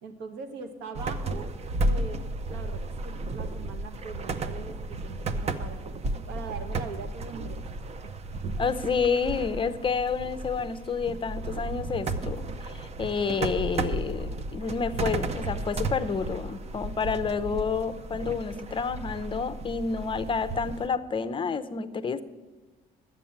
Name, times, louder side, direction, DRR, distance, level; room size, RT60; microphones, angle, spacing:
voice 1, 0.0-1.5 1.8-2.2 2.5-5.8 6.3-8.1, right 4 dB, 85° right, 6 dB, 1.4 m, -41 dB
sound 1, 0.9-20.9, right 2 dB, 40° right, 0.7 m, -33 dB
voice 2, 8.6-22.2, left 5 dB, 30° left, 12 dB, 0.6 m, -29 dB
10.5 x 8.0 x 7.1 m, 1.2 s
cardioid pair, 110°, 17 cm